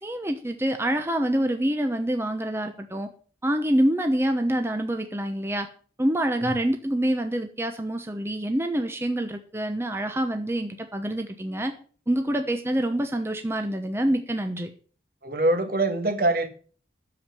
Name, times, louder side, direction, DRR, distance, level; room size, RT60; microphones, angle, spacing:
voice 1, 0.0-3.1 3.4-5.7 6.0-11.7 12.1-14.7, right 1 dB, 15° right, 0.9 m, -26 dB
voice 2, 15.2-16.5, right 2 dB, 55° right, 1.7 m, -23 dB
8.6 x 7.3 x 8.7 m
head